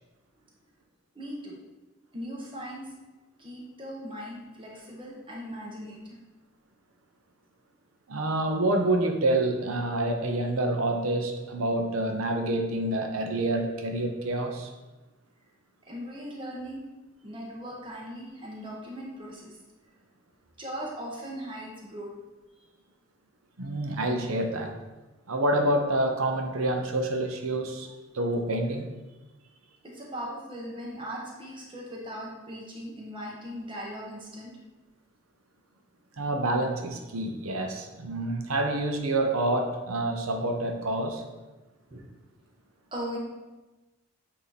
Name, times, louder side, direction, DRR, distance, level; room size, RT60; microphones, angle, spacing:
voice 1, 1.1-1.6 2.1-2.9 3.4-6.2 15.8-16.9 17.2-19.6 20.6-22.1 29.8-34.6 41.9-42.0 42.9-43.2, equal, 25° right, -3 dB, 1.1 m, -39 dB
voice 2, 8.1-14.7 23.6-24.7 25.3-27.9 28.1-28.9 36.2-41.2 41.9-42.0, right 1 dB, 85° right, 4 dB, 0.7 m, -27 dB
8.1 x 2.8 x 4.0 m, 1.1 s
head